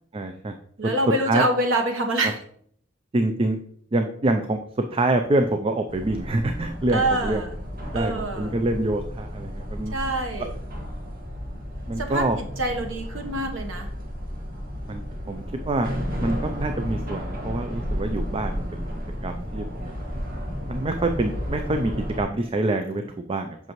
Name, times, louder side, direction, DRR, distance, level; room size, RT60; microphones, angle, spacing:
voice 1, 0.1-0.6 1.3-1.4 2.2-2.3 3.1-3.6 3.9-4.6 4.9-7.4 7.9-10.0 11.9-12.4 14.9-15.9 16.2-18.9 19.2-20.0 20.2-23.6, right 2 dB, 30° right, 6 dB, 0.4 m, -26 dB
voice 2, 0.8-2.4 6.9-7.6 7.9-8.6 9.9-10.5 12.0-13.9, right 1 dB, 90° right, 3 dB, 1.1 m, -26 dB
sound 1, 5.9-22.2, equal, 50° right, 1.6 m, -32 dB
7.7 x 5.9 x 3.0 m, 0.65 s
head